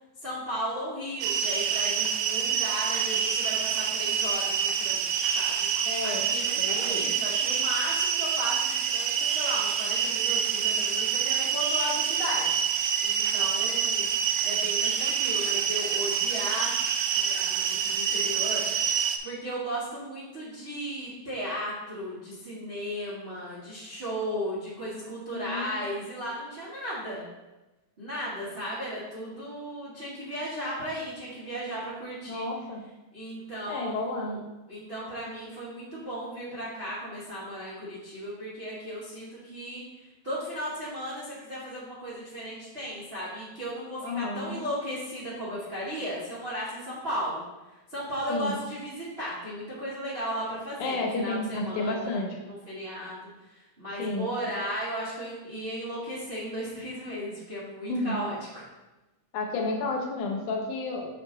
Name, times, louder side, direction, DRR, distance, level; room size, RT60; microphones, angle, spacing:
voice 1, 0.2-14.1 14.4-27.2 28.0-32.5 33.1-34.4 34.7-47.4 47.9-52.2 52.5-58.6, equal, 40° right, -9 dB, 0.8 m, -36 dB
sound 1, 1.2-19.2, right 7 dB, 80° right, 1.9 m, -27 dB
voice 2, 5.9-6.3 6.6-7.1 25.3-25.8 32.3-32.8 33.7-34.4 44.0-44.6 48.3-48.6 50.8-52.4 54.0-54.3 57.9-58.2 59.3-61.1, left 2 dB, 70° left, 1 dB, 2.3 m, -31 dB
6.7 x 5.6 x 3.9 m, 1.1 s
omnidirectional pair, 3.9 m